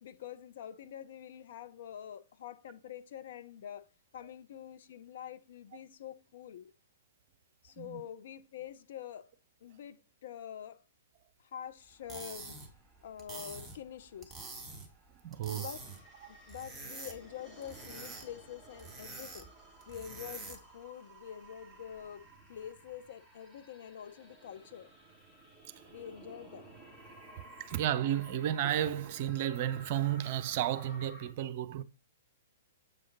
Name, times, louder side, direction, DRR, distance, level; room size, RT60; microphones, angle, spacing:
voice 1, 0.0-3.9 4.1-6.7 7.6-9.3 9.6-10.8 11.5-12.6 13.0-14.4 15.5-15.8 16.3-19.5 19.9-22.2 22.5-24.9 25.9-26.7, left 9 dB, 55° left, 0.7 m, -46 dB
sound 1, 11.9-20.8, right 3 dB, 5° right, 1.8 m, -47 dB
voice 2, 15.2-15.7 16.2-16.3 27.6-31.8, right 11 dB, 45° right, 0.6 m, -32 dB
sound 2, 15.7-31.3, right 1 dB, 10° left, 2.7 m, -55 dB
8.1 x 5.0 x 4.0 m
figure-of-eight pair, 115°, 0 cm